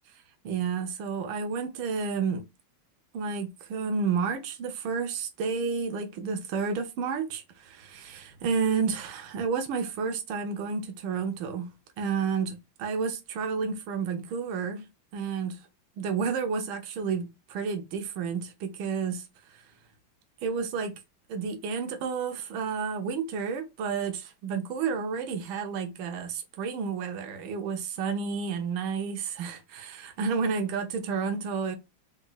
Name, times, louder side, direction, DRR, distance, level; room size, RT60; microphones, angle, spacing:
voice 1, 0.4-2.4 3.1-14.9 15.1-15.6 16.0-19.6 20.4-20.9 21.3-31.8, right 5 dB, 85° right, 1.5 m, -31 dB
4.0 x 3.8 x 2.2 m
omnidirectional pair, 2.2 m